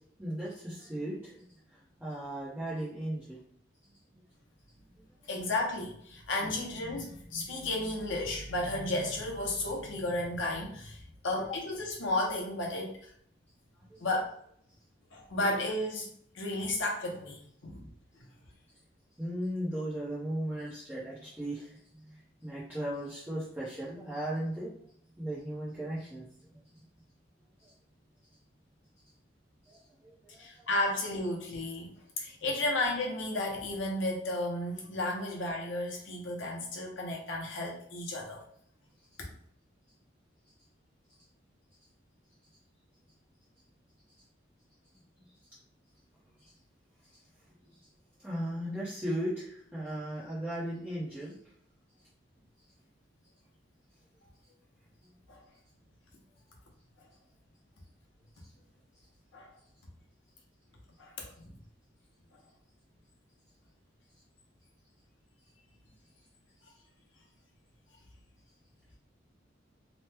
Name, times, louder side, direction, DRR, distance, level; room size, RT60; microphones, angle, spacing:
voice 1, 0.2-1.4 1.7-3.4 4.1-4.2 5.0-5.1 13.9-14.1 19.2-24.7 25.2-26.8 27.6-27.7 29.6-30.7 46.4-46.5 47.7-47.8 48.2-51.3, right 1 dB, 10° right, -10 dB, 0.8 m, -37 dB
voice 2, 5.3-13.1 14.0-14.3 15.1-16.1 16.3-17.9 30.4-38.4 39.2-39.3 55.3-55.4 59.3-59.5 61.0-61.5 62.3-62.4, left 2 dB, 70° left, 0 dB, 0.8 m, -33 dB
3.0 x 2.1 x 3.3 m, 0.64 s
head